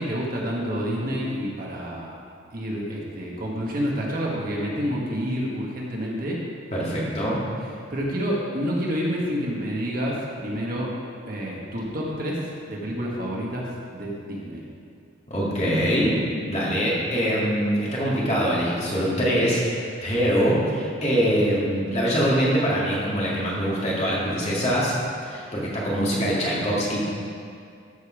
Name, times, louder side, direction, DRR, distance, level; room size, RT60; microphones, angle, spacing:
voice 1, 0.0-2.1 2.5-6.4 7.9-10.9 11.3-14.6, equal, 45° right, -3 dB, 1.5 m, -28 dB
voice 2, 6.7-7.4 15.3-16.1 16.5-25.0 25.3-27.1, equal, 30° left, -6 dB, 2.1 m, -23 dB
13.5 x 5.4 x 5.1 m, 2.3 s
head